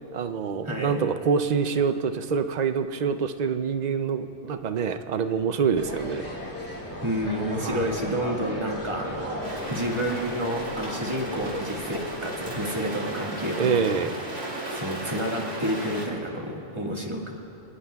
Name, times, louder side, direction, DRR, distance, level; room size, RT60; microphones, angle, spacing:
voice 1, 0.1-6.2 7.6-7.9 13.6-14.1, right 6 dB, 80° right, 8 dB, 0.3 m, -26 dB
voice 2, 0.6-1.0 7.0-9.4 9.7-14.1 14.4-17.3, equal, 20° right, -1 dB, 1.7 m, -30 dB
sound 1, 5.7-13.7, left 1 dB, 15° left, 1.7 m, -37 dB
sound 2, 9.4-16.1, right 1 dB, 50° right, 2.9 m, -35 dB
26.0 x 19.5 x 2.3 m, 3.0 s
omnidirectional pair, 1.4 m